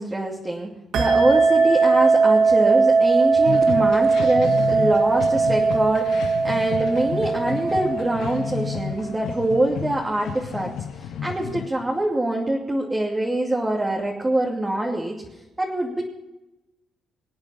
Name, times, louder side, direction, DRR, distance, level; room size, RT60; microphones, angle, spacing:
voice 1, 0.0-10.7 11.0-15.2 15.6-16.0, right 1 dB, 15° right, -2 dB, 2.6 m, -24 dB
sound 1, 0.9-9.1, right 4 dB, 75° right, 2.3 m, -20 dB
sound 2, 3.5-11.7, left 8 dB, 75° left, 1.2 m, -32 dB
26.0 x 8.8 x 5.8 m, 1.0 s
cardioid pair, 90°, 0 cm